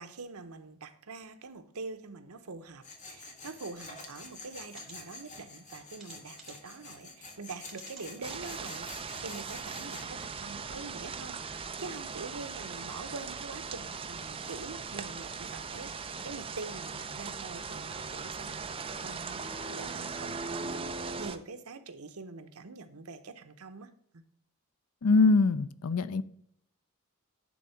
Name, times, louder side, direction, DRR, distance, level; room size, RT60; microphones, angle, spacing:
voice 1, 0.0-24.2, right 3 dB, 85° right, 0.9 m, -45 dB
Tools, 2.8-10.1, left 3 dB, 35° left, 1.6 m, -48 dB
sound 1, 4.7-5.0 6.0-6.7 7.6-8.1 8.7-8.8 9.1-9.2, right 3 dB, 5° right, 2.8 m, -51 dB
sound 2, 8.2-21.4, right 5 dB, 25° right, 0.5 m, -39 dB
voice 2, 25.0-26.2, left 3 dB, 75° left, 0.5 m, -23 dB
10.0 x 3.7 x 5.7 m
head